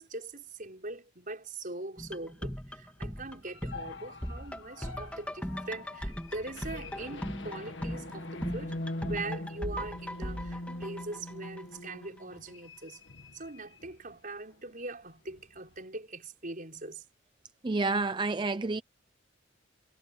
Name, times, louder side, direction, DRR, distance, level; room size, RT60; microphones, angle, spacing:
voice 1, 0.0-13.0 13.3-17.0, right 2 dB, 45° right, 6.0 m, -41 dB
sound 1, 2.0-11.9 12.2-12.3, equal, 5° left, 3.2 m, -39 dB
sound 2, 3.2-14.2 14.5-14.7 15.0-15.8, left 2 dB, 70° left, 2.0 m, -43 dB
voice 2, 17.6-18.8, right 3 dB, 25° right, 0.5 m, -29 dB
head